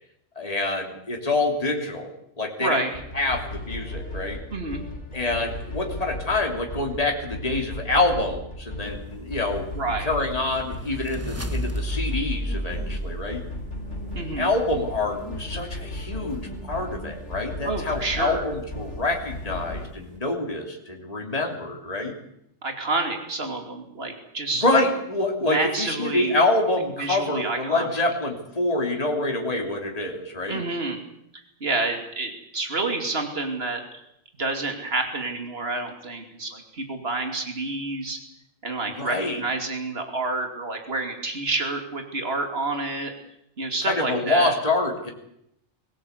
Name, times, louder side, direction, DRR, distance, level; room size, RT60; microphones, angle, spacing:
voice 1, 0.3-2.1 2.4-2.8 3.1-4.4 5.1-9.7 10.0-13.5 14.4-22.2 24.6-30.6 39.0-39.4 43.8-45.1, left 2 dB, 30° left, 2 dB, 3.2 m, -26 dB
voice 2, 2.6-2.9 4.5-4.8 9.7-10.1 14.1-14.5 17.6-18.4 22.6-24.6 25.4-26.4 27.0-28.0 30.5-31.0 31.6-33.8 34.4-38.2 38.6-43.1 43.6-44.5, right 3 dB, 50° right, 4 dB, 3.1 m, -28 dB
sound 1, 2.9-19.9, left 1 dB, 60° left, 3.1 m, -36 dB
sound 2, 8.8-20.2, right 3 dB, 80° right, 4.6 m, -46 dB
sound 3, 10.3-14.1, equal, 10° right, 1.2 m, -32 dB
23.0 x 17.0 x 8.2 m, 0.78 s
omnidirectional pair, 1.3 m